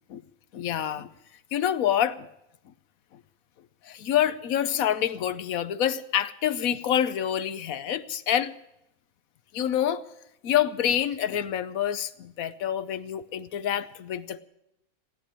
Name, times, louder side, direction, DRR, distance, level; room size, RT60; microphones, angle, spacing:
voice 1, 0.5-1.1 1.5-2.3 3.8-8.5 9.5-10.0 10.4-14.4, left 10 dB, 65° left, 13 dB, 1.1 m, -27 dB
16.5 x 9.9 x 8.7 m, 0.84 s
omnidirectional pair, 1.6 m